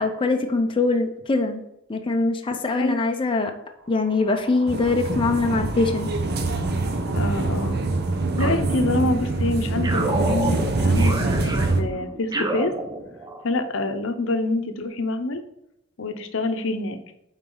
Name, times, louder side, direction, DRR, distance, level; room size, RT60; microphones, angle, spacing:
voice 1, 0.0-1.6 1.9-3.5 3.9-6.1, left 3 dB, 25° left, 4 dB, 0.6 m, -22 dB
voice 2, 2.7-3.0 7.1-7.8 8.4-12.7 13.4-15.4 16.0-17.0, left 2 dB, 70° left, 8 dB, 0.8 m, -26 dB
sound 1, 3.7-11.9, right 2 dB, 80° right, 2.4 m, -44 dB
sound 2, 4.7-11.8, right 2 dB, 50° right, 0.9 m, -24 dB
sound 3, 8.4-9.3 9.8-13.5, right 2 dB, 20° right, 0.7 m, -30 dB
9.1 x 4.0 x 3.9 m, 0.84 s
head